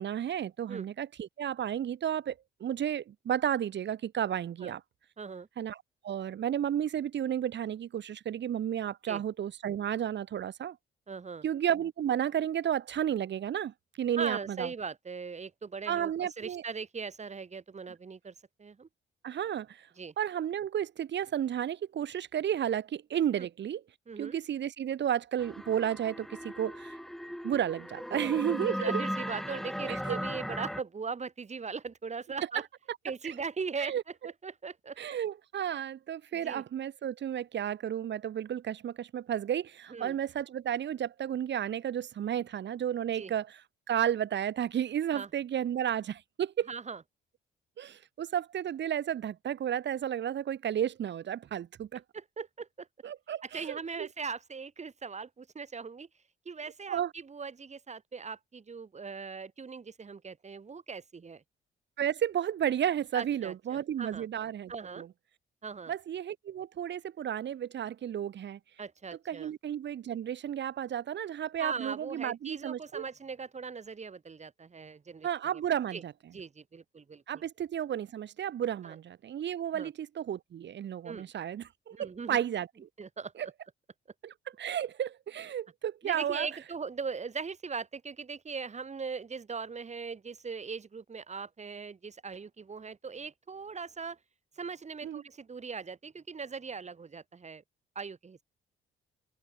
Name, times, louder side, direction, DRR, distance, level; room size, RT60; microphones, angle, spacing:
voice 1, 0.0-2.4 2.6-4.8 5.6-5.8 6.0-10.8 11.4-14.7 15.9-16.6 19.2-19.9 20.2-23.8 24.2-27.0 27.4-29.0 29.9-30.2 33.2-33.3 33.8-34.0 35.0-43.6 43.9-46.7 47.8-52.0 53.0-54.1 56.9-57.1 62.0-65.1 65.9-68.6 69.3-73.0 75.2-76.1 77.3-82.9 83.4-83.5 84.2-86.5 95.0-95.2, right 10 dB, 65° right, 3.8 m, -32 dB
voice 2, 5.2-5.5 9.1-9.2 11.1-11.4 14.2-18.3 18.6-18.9 20.0-20.1 23.4-23.5 24.1-24.4 28.1-28.4 28.7-32.6 33.0-34.0 34.4-35.0 36.3-36.6 39.9-40.2 43.2-43.3 45.1-45.3 46.7-47.0 52.1-52.9 53.4-56.1 56.4-61.4 63.1-64.3 64.7-65.0 65.6-65.9 68.8-69.5 71.6-75.3 75.9-76.0 76.3-77.4 78.8-79.0 79.7-79.9 81.0-81.3 81.9-82.4 83.0-83.5 86.0-94.2 94.6-97.6 97.9-98.4, right 5 dB, 35° right, 4.5 m, -40 dB
sound 1, 25.4-30.8, equal, ahead, 3.2 m, -37 dB
open air
cardioid pair, 90°, 20 cm